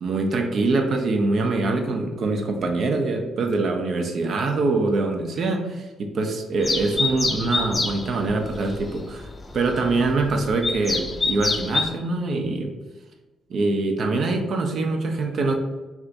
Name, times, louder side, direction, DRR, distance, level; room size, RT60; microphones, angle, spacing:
voice 1, 0.0-9.3 9.5-12.7 13.5-15.5, right 3 dB, 55° right, 4 dB, 0.5 m, -24 dB
sound 1, 6.6-11.9, left 3 dB, 30° left, 0.5 m, -27 dB
2.5 x 2.3 x 3.8 m, 1.1 s
hypercardioid pair, 50°, 0 cm